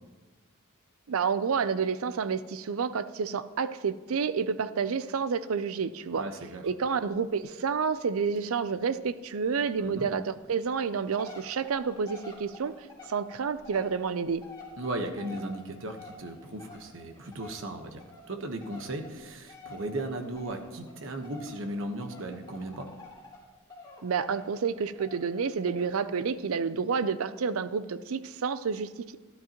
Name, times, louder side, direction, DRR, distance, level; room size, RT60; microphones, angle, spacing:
voice 1, 1.1-6.3 6.6-14.4 24.0-29.2, right 6 dB, 90° right, 14 dB, 0.5 m, -29 dB
voice 2, 6.1-6.7 9.8-10.1 14.8-22.9, right 1 dB, 65° right, 5 dB, 1.1 m, -36 dB
sound 1, 7.1-7.2 7.5-7.6 7.9-8.0 8.4-8.5 8.8-8.9 9.4-9.5 10.1-10.2 10.6-23.4 23.7-26.0 26.4-26.5, left 3 dB, 20° left, 2.6 m, -48 dB
12.5 x 12.0 x 3.0 m, 1.3 s
head